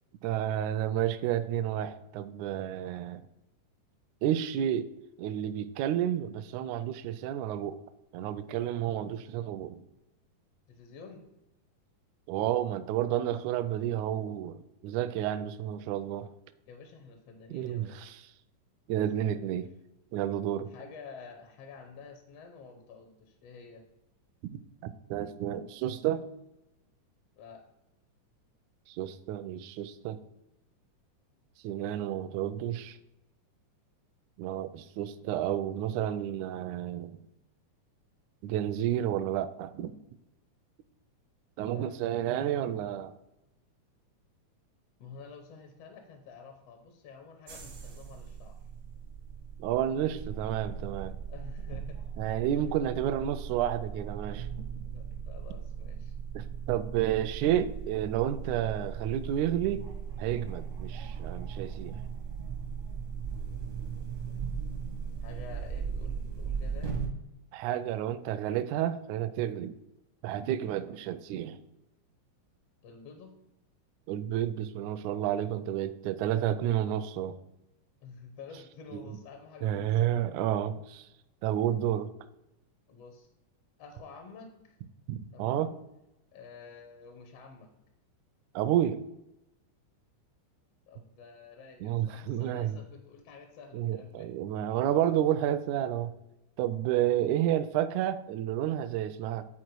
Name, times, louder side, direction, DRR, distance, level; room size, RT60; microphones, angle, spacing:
voice 1, 0.2-3.2 4.2-4.9 5.2-7.8 8.1-9.8 12.3-16.3 17.5-18.2 18.9-19.7 20.1-20.7 24.4-24.5 24.8-26.3 28.9-30.2 31.6-33.0 34.4-37.2 38.4-40.0 41.6-43.1 49.6-51.1 52.2-54.5 56.4-59.9 60.2-62.0 67.5-69.8 70.2-71.6 74.1-77.4 78.9-79.2 79.6-81.1 81.4-82.1 85.1-85.7 88.6-89.0 91.8-92.8 93.7-96.1 96.6-99.5, right 11 dB, 80° right, 1.8 m, -30 dB
voice 2, 10.7-11.3 16.7-18.0 19.2-19.4 20.7-23.9 27.4-27.6 41.6-42.0 45.0-48.6 51.3-52.0 52.5-52.7 54.8-56.1 65.2-67.0 72.8-73.4 78.0-80.0 82.9-83.3 83.8-84.8 85.3-85.7 86.3-87.7 90.9-94.3, left 5 dB, 65° left, 1.6 m, -49 dB
sound 1, 47.5-67.1, right 6 dB, 65° right, 0.7 m, -38 dB
9.8 x 4.4 x 4.6 m
omnidirectional pair, 3.7 m